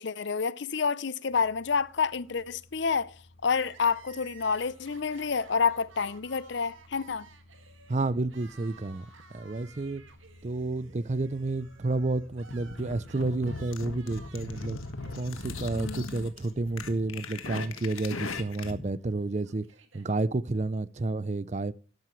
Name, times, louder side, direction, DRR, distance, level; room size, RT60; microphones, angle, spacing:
voice 1, 0.0-3.2 3.4-7.3 15.7-16.3, left 5 dB, 55° left, 0.6 m, -29 dB
sound 1, 1.3-16.1, left 1 dB, 75° left, 3.7 m, -55 dB
Crying sobbing, 3.4-17.6 17.9-18.0 18.9-20.1, right 5 dB, 75° right, 2.1 m, -56 dB
voice 2, 7.9-9.1 9.3-10.0 10.4-14.8 15.1-19.7 19.9-21.7, right 2 dB, 35° right, 0.5 m, -30 dB
sound 2, 12.5-18.9, left 3 dB, 90° left, 1.5 m, -39 dB
13.5 x 10.5 x 3.1 m
head